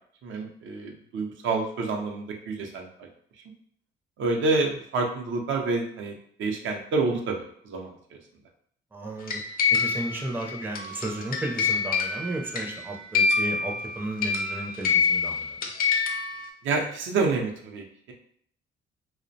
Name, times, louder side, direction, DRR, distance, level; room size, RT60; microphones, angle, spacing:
voice 1, 0.2-3.1 4.2-7.9 16.6-18.1, right 3 dB, 75° right, 2 dB, 0.5 m, -28 dB
voice 2, 8.9-9.4 9.7-15.6, right 1 dB, 10° right, -1 dB, 0.4 m, -34 dB
sound 1, 9.3-16.5, left 5 dB, 50° left, 0.4 m, -26 dB
2.4 x 2.0 x 2.6 m, 0.63 s
cardioid pair, 90°, 20 cm